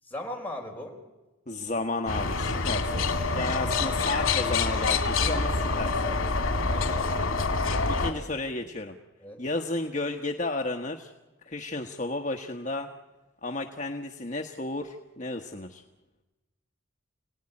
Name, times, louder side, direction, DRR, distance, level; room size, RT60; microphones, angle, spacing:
voice 1, 0.0-1.0 6.7-8.1 9.2-9.4, left 1 dB, 10° left, -1 dB, 4.9 m, -40 dB
voice 2, 1.5-3.0 3.3-6.0 7.9-8.9 9.4-11.1 11.4-12.9 13.4-15.8, left 2 dB, 35° left, 3 dB, 1.2 m, -32 dB
sound 1, 2.1-8.1, left 3 dB, 80° left, 2.6 m, -26 dB
29.0 x 18.5 x 9.8 m, 1.1 s
head